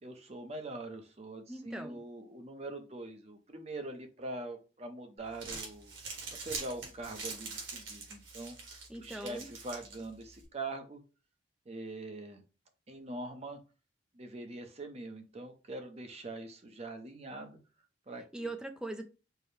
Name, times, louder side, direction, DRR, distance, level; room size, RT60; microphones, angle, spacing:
voice 1, 0.0-5.9 6.3-11.0 11.7-12.4 12.9-13.6 14.1-17.6 18.1-18.5, right 2 dB, 35° right, 0.7 m, -43 dB
voice 2, 1.5-2.0 8.9-9.5 18.3-19.0, right 2 dB, 5° right, 0.5 m, -41 dB
Crumpling crinkling, 5.2-10.4, right 4 dB, 80° right, 1.5 m, -44 dB
4.6 x 2.1 x 3.2 m
head